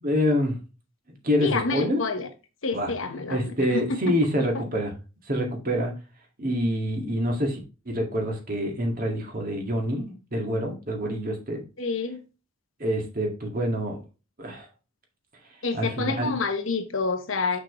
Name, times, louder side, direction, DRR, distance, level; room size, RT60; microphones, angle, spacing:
voice 1, 0.0-0.6 1.2-2.0 2.7-2.9 3.3-4.9 5.3-5.9 6.4-7.6 7.9-11.6 12.8-14.0 14.4-14.7 15.7-16.3, equal, 40° right, 2.0 m, -26 dB
voice 2, 1.4-2.3 2.6-3.4 3.7-3.8 11.8-12.2 15.6-17.6, left 4 dB, 65° left, 1.1 m, -28 dB
6.3 x 6.3 x 3.1 m
head